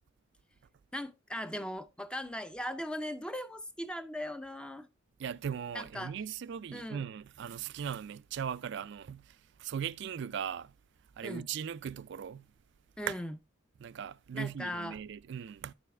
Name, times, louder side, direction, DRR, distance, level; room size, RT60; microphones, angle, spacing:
voice 1, 0.9-4.9 5.7-6.1 6.7-7.1 11.2-11.5 13.0-13.4 14.3-15.0, equal, 5° left, 0.5 m, -39 dB
voice 2, 5.2-10.7 11.2-12.5 13.1-13.2 13.8-15.7, right 8 dB, 60° right, 0.4 m, -39 dB
10.0 x 7.1 x 3.2 m
head